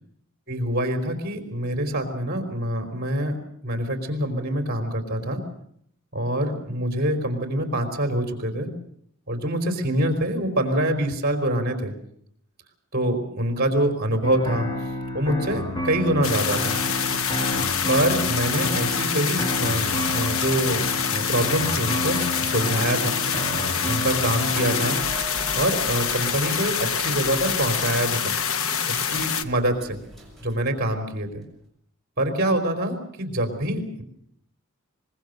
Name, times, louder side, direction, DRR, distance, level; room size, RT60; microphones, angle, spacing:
voice 1, 0.5-3.4 3.6-5.4 6.1-8.7 9.3-11.9 12.9-14.7 15.1-16.8 17.9-23.1 23.9-25.0 25.5-28.3 28.9-30.0 30.4-31.4 32.2-34.0, right 1 dB, 50° right, 7 dB, 3.9 m, -25 dB
sound 1, 14.2-25.0, left 1 dB, 20° left, 2.4 m, -30 dB
sound 2, 16.2-29.4, left 7 dB, 75° left, 1.2 m, -26 dB
sound 3, 25.0-31.5, equal, ahead, 6.6 m, -44 dB
24.0 x 21.5 x 6.7 m, 0.69 s
head